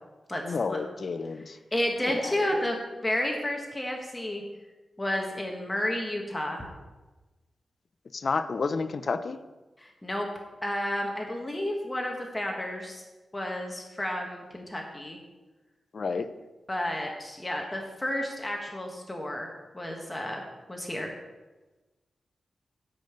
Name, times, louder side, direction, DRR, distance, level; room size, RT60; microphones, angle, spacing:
voice 1, 0.4-1.6 2.0-2.5 8.1-9.4 15.9-16.3, left 4 dB, 45° left, 11 dB, 0.6 m, -30 dB
voice 2, 1.7-2.8 3.0-4.4 5.0-6.6 9.8-10.3 10.6-13.0 13.3-15.2 16.7-19.5 19.7-20.4 20.7-21.1, left 1 dB, 15° left, 1 dB, 1.2 m, -31 dB
10.5 x 5.3 x 7.9 m, 1.2 s
wide cardioid pair, 165°, 0 cm